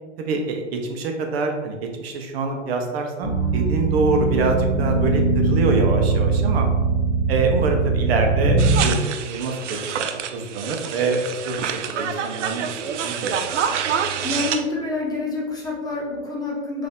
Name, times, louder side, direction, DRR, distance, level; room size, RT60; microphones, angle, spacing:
voice 1, 0.3-6.7 7.3-13.4, right 3 dB, 60° right, 3 dB, 0.8 m, -25 dB
sound 1, 3.2-8.8, right 4 dB, 50° left, 1.2 m, -21 dB
sound 2, 8.6-14.6, right 7 dB, 80° right, 0.5 m, -27 dB
voice 2, 14.2-16.9, left 3 dB, 10° left, -3 dB, 0.7 m, -27 dB
4.2 x 2.8 x 3.6 m, 1.3 s
hypercardioid pair, 120°, 35 cm